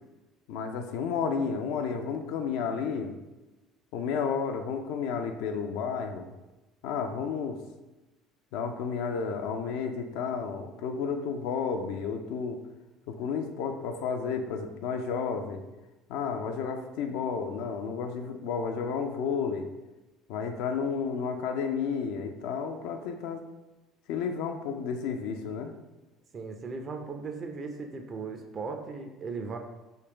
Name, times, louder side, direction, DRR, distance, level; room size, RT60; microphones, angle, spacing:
voice 1, 0.5-3.1 3.9-6.3 6.8-7.6 8.5-12.6 13.1-15.6 16.1-19.7 20.3-23.4 24.1-25.7, left 6 dB, 70° left, 6 dB, 0.3 m, -32 dB
voice 2, 26.3-29.6, right 4 dB, 40° right, 4 dB, 0.5 m, -37 dB
3.3 x 3.1 x 2.9 m, 1.1 s
hypercardioid pair, 65°, 0 cm